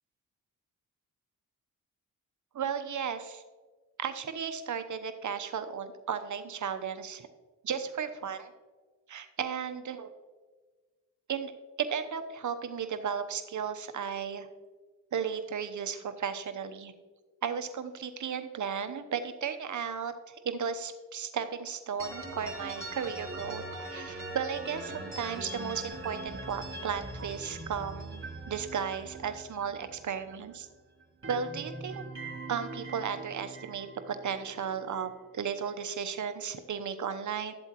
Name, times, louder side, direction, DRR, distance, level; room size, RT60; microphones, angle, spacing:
voice 1, 2.5-3.4 4.0-7.3 7.6-8.5 9.1-10.1 11.3-11.5 11.8-14.5 15.1-16.9 17.4-30.7 31.3-32.0 32.5-37.5, right 7 dB, 50° right, 9 dB, 0.9 m, -35 dB
sound 1, 22.0-30.7 31.0-35.1, right 2 dB, 35° right, 3.3 m, -42 dB
12.5 x 7.8 x 3.0 m, 1.4 s
hypercardioid pair, 45°, 37 cm